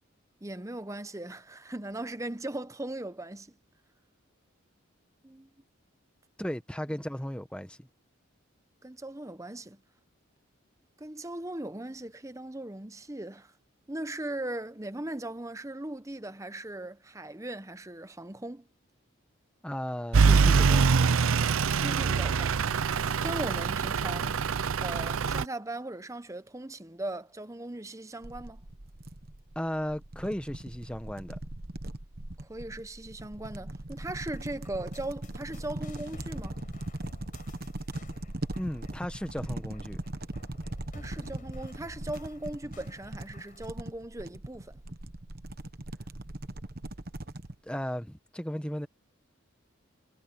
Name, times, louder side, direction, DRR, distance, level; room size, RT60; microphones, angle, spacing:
voice 1, 0.4-3.6 5.2-5.5 8.8-9.8 11.0-13.5 13.9-18.7 21.8-22.7 23.2-24.4 24.8-28.6 32.4-36.6 40.9-44.8, right 1 dB, 15° right, 0.8 m, -39 dB
voice 2, 6.4-7.9 19.6-21.0 29.5-31.4 38.5-40.0 47.6-48.9, equal, 5° left, 1.1 m, -35 dB
Truck / Idling, 20.1-25.4, right 5 dB, 80° right, 0.6 m, -24 dB
sound 1, 28.2-47.6, right 1 dB, 45° right, 1.2 m, -40 dB
sound 2, 34.3-43.7, left 1 dB, 40° left, 4.5 m, -51 dB
head